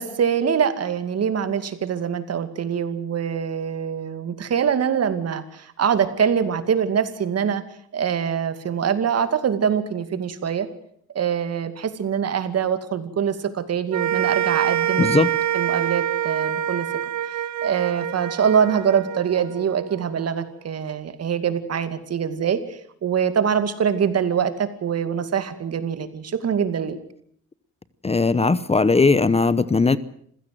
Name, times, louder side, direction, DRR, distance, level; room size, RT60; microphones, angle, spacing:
voice 1, 0.0-7.6 7.9-10.7 11.1-15.1 15.5-16.9 17.6-27.0, right 7 dB, 55° right, 11 dB, 2.4 m, -24 dB
sound 1, 13.9-20.3, right 11 dB, 70° right, 1.2 m, -26 dB
voice 2, 15.0-15.3 28.0-30.0, left 3 dB, 20° left, 17 dB, 0.9 m, -18 dB
27.0 x 16.0 x 7.7 m, 0.65 s
cardioid pair, 90°, 30 cm